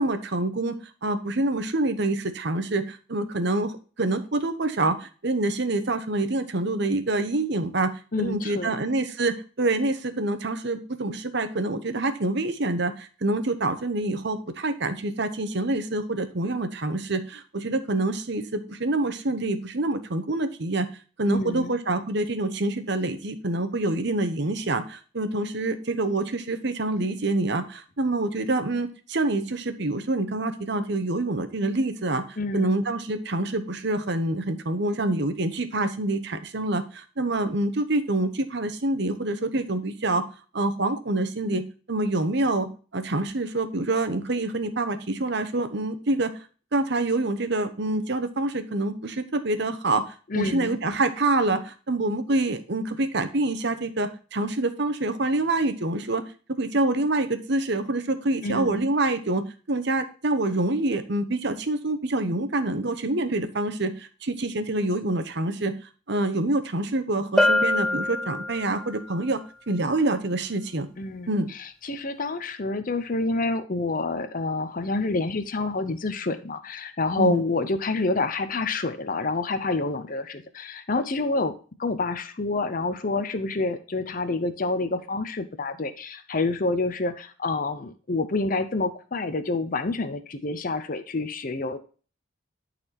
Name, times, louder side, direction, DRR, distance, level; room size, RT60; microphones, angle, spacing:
voice 1, 0.0-7.9 8.2-20.9 21.2-32.2 32.5-40.2 40.5-46.3 46.7-56.2 56.6-65.7 66.1-70.9 71.3-71.5 77.2-77.4, right 2 dB, 55° right, 9 dB, 1.0 m, -26 dB
voice 2, 8.1-8.8 21.3-21.7 32.4-32.7 50.3-50.8 58.4-58.9 71.0-71.3 71.6-81.5 81.8-91.8, left 3 dB, 40° left, 9 dB, 0.7 m, -28 dB
Bell, 67.4-69.0, left 1 dB, 5° left, 0.5 m, -23 dB
12.0 x 4.3 x 4.3 m, 0.38 s
head